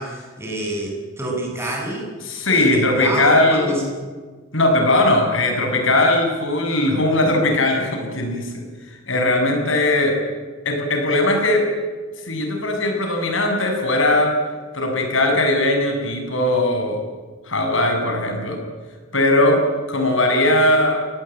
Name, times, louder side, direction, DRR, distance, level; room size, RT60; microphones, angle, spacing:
voice 1, 0.0-2.1 2.5-3.8, right 2 dB, 10° right, -1 dB, 7.7 m, -28 dB
voice 2, 2.2-3.9 4.5-10.2 10.7-11.7 12.2-14.3 14.7-17.0 17.5-18.6 19.1-19.6 19.9-21.0, left 1 dB, 65° left, 3 dB, 7.1 m, -19 dB
29.0 x 19.0 x 9.2 m, 1.4 s
head